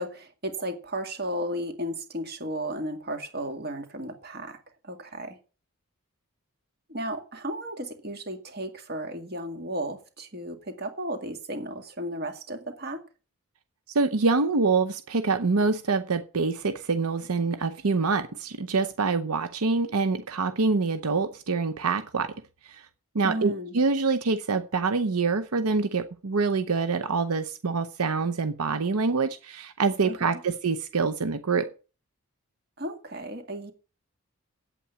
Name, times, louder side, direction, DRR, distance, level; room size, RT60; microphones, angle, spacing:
voice 1, 0.0-4.6 4.8-5.4 6.9-13.0 23.2-23.8 30.0-30.4 32.8-33.7, right 1 dB, 45° right, 2.0 m, -34 dB
voice 2, 13.9-22.3 22.7-22.8 23.1-31.7, right 4 dB, 85° right, 0.7 m, -25 dB
8.6 x 8.5 x 7.1 m
head